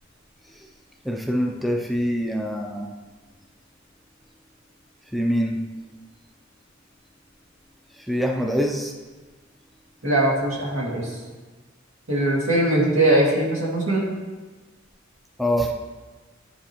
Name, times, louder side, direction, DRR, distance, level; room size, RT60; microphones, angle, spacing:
voice 1, 1.1-2.9 5.1-5.6 8.1-8.9 15.4-15.7, equal, ahead, 1 dB, 0.4 m, -24 dB
voice 2, 10.0-11.1 12.1-14.1, right 1 dB, 75° right, -4 dB, 2.1 m, -21 dB
11.0 x 5.0 x 3.0 m, 1.3 s
head